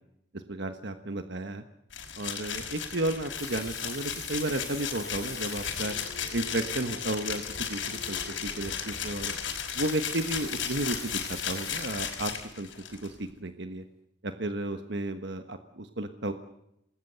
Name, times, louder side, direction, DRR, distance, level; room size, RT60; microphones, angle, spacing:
voice 1, 0.3-1.6 2.2-6.0 6.3-9.3 9.7-12.3 12.6-12.7 13.0-13.8 14.2-16.3, right 2 dB, 65° right, 7 dB, 1.3 m, -33 dB
sound 1, 1.9-13.1, left 7 dB, 85° left, 5.2 m, -35 dB
Water tap faucet, 3.1-6.0 6.8-6.9 7.2-7.3 9.5-12.1 12.7-13.0, left 5 dB, 20° left, 6.7 m, -44 dB
sound 2, 4.4-9.5, left 3 dB, 55° left, 4.9 m, -49 dB
27.5 x 20.0 x 8.0 m, 0.84 s
head